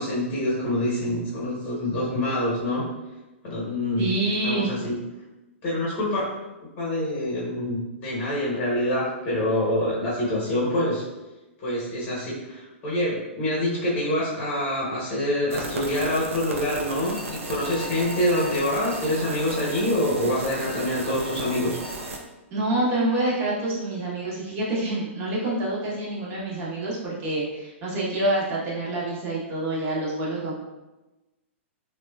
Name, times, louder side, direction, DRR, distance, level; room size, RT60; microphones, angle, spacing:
voice 1, 0.0-2.8 3.4-4.1 4.4-4.9 5.6-6.3 6.8-11.1 11.6-21.8, left 1 dB, 30° left, -6 dB, 0.9 m, -26 dB
voice 2, 4.0-4.7 22.5-30.5, right 1 dB, 30° right, -5 dB, 0.9 m, -27 dB
sound 1, 15.5-22.2, right 2 dB, 90° right, 0.4 m, -35 dB
Bowed string instrument, 16.9-22.2, left 1 dB, ahead, 0.9 m, -42 dB
2.9 x 2.1 x 2.3 m, 1.0 s
hypercardioid pair, 135°, 7 cm